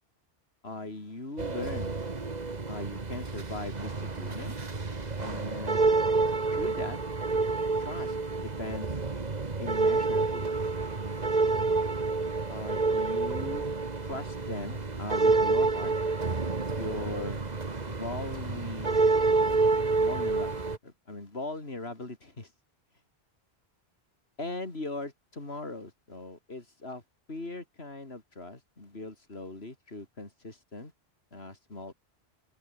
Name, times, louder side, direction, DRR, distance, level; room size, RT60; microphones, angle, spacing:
voice 1, 0.6-2.0 2.7-4.5 5.2-5.8 6.5-7.0 7.8-8.2 8.6-9.0 9.6-10.5 11.1-11.2 12.5-13.7 14.0-15.9 16.8-17.4 17.9-19.0 19.4-19.6 20.0-20.5 20.8-22.5 24.4-27.0 27.3-30.9 31.3-31.9, left 2 dB, 75° left, 4.1 m, -39 dB
sound 1, 1.4-20.8, right 3 dB, 40° right, 1.7 m, -28 dB
open air
omnidirectional pair, 1.1 m